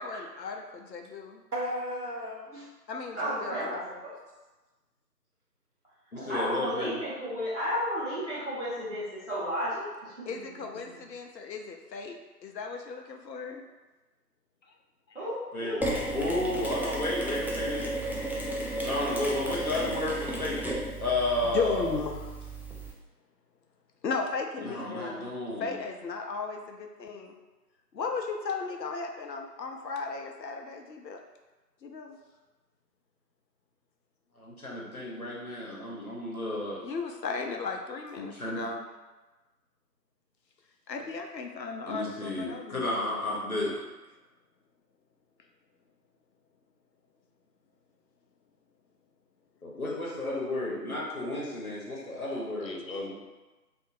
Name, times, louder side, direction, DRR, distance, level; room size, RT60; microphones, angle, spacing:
voice 1, 0.0-1.4 2.9-3.7 10.3-12.2 12.4-13.6 15.1-15.2 21.4-22.3 24.0-25.3 25.6-27.3 27.9-31.2 31.8-32.2 36.8-38.9 40.9-43.1 52.6-53.1, left 4 dB, 85° left, 3 dB, 0.6 m, -36 dB
voice 2, 1.5-2.7 3.2-3.8 6.2-6.5, equal, 70° right, -3 dB, 0.8 m, -36 dB
voice 3, 3.1-4.1 6.3-10.4 15.1-16.0, equal, 45° right, -10 dB, 1.2 m, -33 dB
voice 4, 6.1-7.0 15.5-15.8 16.1-17.9 18.8-20.6 21.0-21.9 24.6-25.8 34.4-36.8 38.2-38.6 41.9-43.8 49.6-53.1, left 1 dB, 60° left, -4 dB, 0.9 m, -32 dB
Mechanisms, 15.8-22.9, right 1 dB, 5° right, 0.3 m, -34 dB
2.7 x 2.5 x 2.5 m, 1.2 s
figure-of-eight pair, 175°, 49 cm